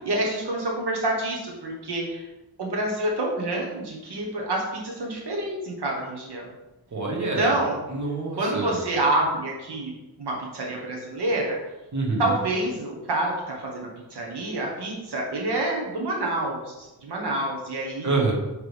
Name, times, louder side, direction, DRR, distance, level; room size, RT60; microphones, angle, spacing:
voice 1, 0.0-2.2 2.6-6.5 7.2-7.8 8.4-9.9 10.2-11.6 12.2-18.1, right 1 dB, 90° right, -1 dB, 1.1 m, -27 dB
voice 2, 6.9-7.6 7.9-8.8 11.9-12.3 18.0-18.3, right 3 dB, 45° right, -2 dB, 1.5 m, -26 dB
8.9 x 3.3 x 3.4 m, 1.1 s
wide cardioid pair, 125°, 39 cm